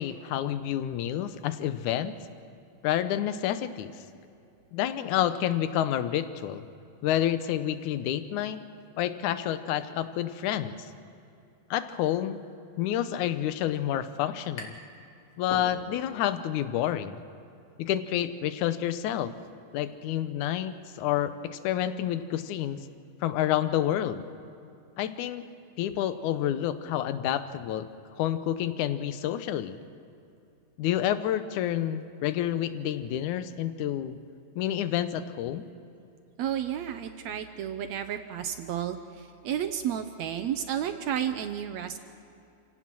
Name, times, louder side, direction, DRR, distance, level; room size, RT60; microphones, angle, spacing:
voice 1, 0.0-2.2 2.8-3.9 4.7-6.6 7.0-8.6 9.0-10.9 11.7-12.4 12.8-14.8 15.4-17.2 17.8-19.3 19.7-22.8 23.2-24.2 25.0-25.4 25.8-27.9 28.2-29.8 30.8-34.2 34.6-35.7, left 11 dB, 75° left, 12 dB, 2.1 m, -29 dB
sound 1, 14.6-15.0 15.3-16.2, left 2 dB, 45° left, 3.0 m, -42 dB
voice 2, 36.4-42.0, right 9 dB, 75° right, 8 dB, 1.7 m, -32 dB
28.0 x 17.5 x 6.2 m, 2.7 s
omnidirectional pair, 3.8 m